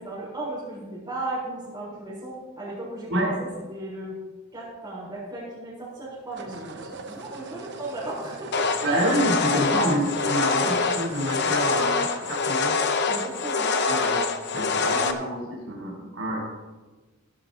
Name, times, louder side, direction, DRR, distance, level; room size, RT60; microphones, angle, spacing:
voice 1, 0.0-4.2 4.5-8.7 13.1-13.7, right 2 dB, 20° right, -10 dB, 4.3 m, -36 dB
sound 1, 2.1-2.4 6.3-13.3, right 3 dB, 55° right, 0.9 m, -42 dB
sound 2, 8.5-15.1, left 4 dB, 55° left, 0.8 m, -25 dB
voice 2, 8.8-12.8 13.8-14.2 14.5-16.4, right 1 dB, 85° right, -3 dB, 4.1 m, -27 dB
15.5 x 13.0 x 2.9 m, 1.2 s
head